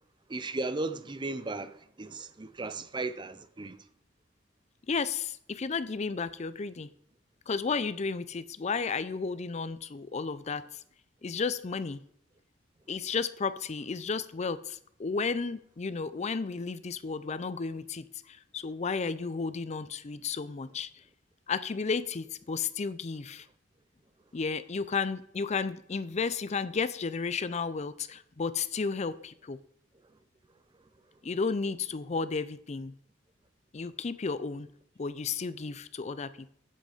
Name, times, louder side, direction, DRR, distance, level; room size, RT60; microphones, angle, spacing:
voice 1, 0.3-3.8, right 3 dB, 25° right, 0.5 m, -36 dB
voice 2, 4.9-6.9 7.5-10.6 11.2-12.0 12.9-20.9 21.5-23.5 24.3-29.6 31.2-32.9 33.7-34.7 35.0-36.5, left 5 dB, 35° left, 0.5 m, -33 dB
7.9 x 7.7 x 5.0 m
head